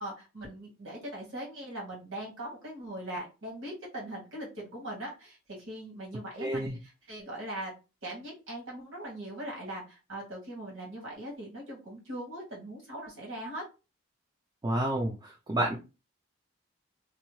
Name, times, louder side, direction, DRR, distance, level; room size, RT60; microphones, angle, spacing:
voice 1, 0.0-7.7 8.0-13.6, right 1 dB, 85° right, -2 dB, 1.3 m, -40 dB
voice 2, 6.4-6.8 14.6-15.8, right 1 dB, 20° right, 0 dB, 0.4 m, -30 dB
2.7 x 2.0 x 3.0 m, 0.30 s
head